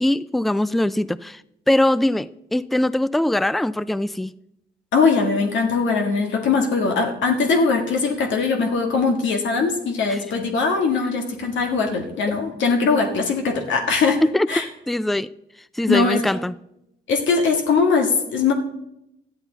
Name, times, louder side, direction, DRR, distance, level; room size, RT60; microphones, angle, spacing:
voice 1, 0.0-1.4 1.7-4.3 10.1-10.2 14.3-15.3 15.8-16.6, left 1 dB, ahead, 0.4 m, -22 dB
voice 2, 4.9-14.2 14.5-14.6 15.9-16.2 17.1-18.5, left 4 dB, 85° left, 1.8 m, -21 dB
13.0 x 10.5 x 4.0 m
cardioid pair, 75°, 19 cm